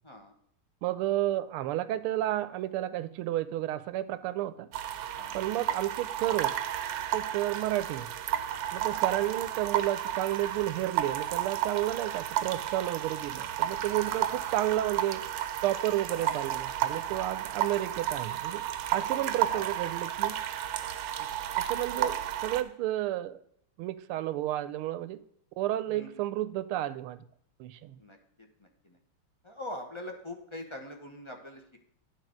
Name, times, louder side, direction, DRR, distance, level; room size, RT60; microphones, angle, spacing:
voice 1, 0.8-4.7 5.3-6.5 7.1-8.1 8.7-15.2 15.6-18.6 18.9-20.4 21.6-22.1 22.4-23.4 23.8-25.2 25.6-27.2 27.6-28.0, right 14 dB, 85° right, 14 dB, 1.5 m, -31 dB
sound 1, 4.7-22.6, right 11 dB, 70° right, 1.2 m, -32 dB
voice 2, 16.1-16.7 19.1-19.6 21.9-22.1 25.9-26.1 28.0-29.0 29.4-31.8, left 1 dB, 25° left, 3 dB, 0.7 m, -44 dB
9.6 x 4.9 x 6.3 m, 0.69 s
omnidirectional pair, 2.4 m